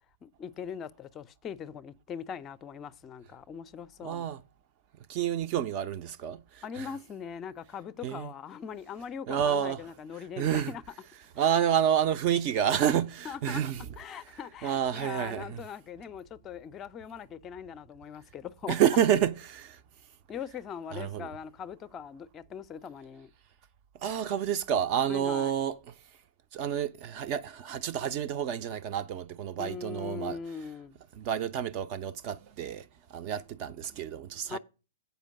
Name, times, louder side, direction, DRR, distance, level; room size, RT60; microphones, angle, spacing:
voice 1, 0.2-4.3 6.6-10.8 13.2-13.6 14.0-18.8 20.3-23.3 25.1-25.6 29.6-31.0 34.4-34.6, left 7 dB, 20° left, 0.5 m, -41 dB
voice 2, 4.0-4.4 5.1-6.9 8.0-8.3 9.3-10.7 11.4-13.9 14.6-15.6 18.7-19.8 20.9-21.3 24.0-25.9 26.5-30.4 31.1-34.6, right 9 dB, 35° right, 0.4 m, -29 dB
8.0 x 5.1 x 6.2 m
figure-of-eight pair, 110°, 0 cm